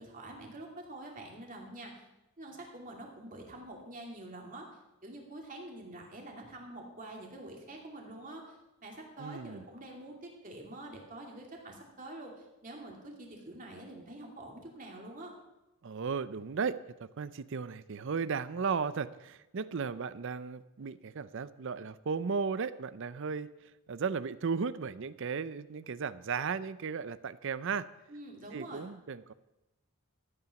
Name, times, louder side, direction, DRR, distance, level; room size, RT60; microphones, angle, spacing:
voice 1, 0.0-2.0 2.4-4.7 5.0-8.6 8.8-15.3 28.1-28.9, right 1 dB, 35° right, 0 dB, 2.5 m, -46 dB
voice 2, 9.2-9.6 15.8-23.5 23.9-27.9 28.5-29.3, right 5 dB, 60° right, 16 dB, 0.5 m, -35 dB
13.5 x 8.8 x 5.9 m, 0.97 s
head